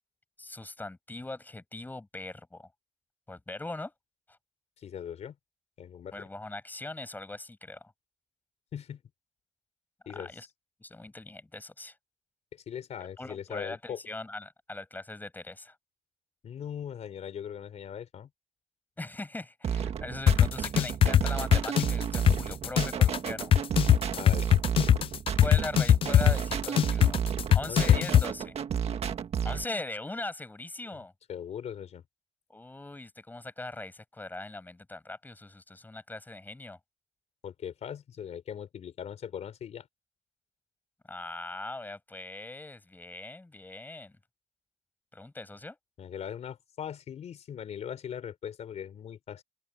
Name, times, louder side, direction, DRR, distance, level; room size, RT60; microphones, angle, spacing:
voice 1, 0.4-2.7 3.3-3.9 4.3-4.4 6.1-7.9 10.1-10.5 10.8-12.0 13.2-15.7 19.0-23.5 25.4-27.2 27.5-28.6 29.4-31.1 32.5-36.8 41.1-44.2 45.1-45.8, left 2 dB, 15° left, 7.6 m, -40 dB
voice 2, 4.8-5.4 5.8-6.3 8.7-9.0 10.1-10.3 12.5-14.0 16.4-18.3 24.2-24.5 27.7-28.0 30.9-31.0 31.3-32.0 37.4-39.9 46.0-49.4, left 8 dB, 65° left, 4.3 m, -40 dB
sound 1, 19.6-29.7, right 8 dB, 55° right, 1.7 m, -32 dB
sound 2, 20.3-28.2, left 10 dB, 50° left, 0.4 m, -20 dB
open air
cardioid pair, 120°, 12 cm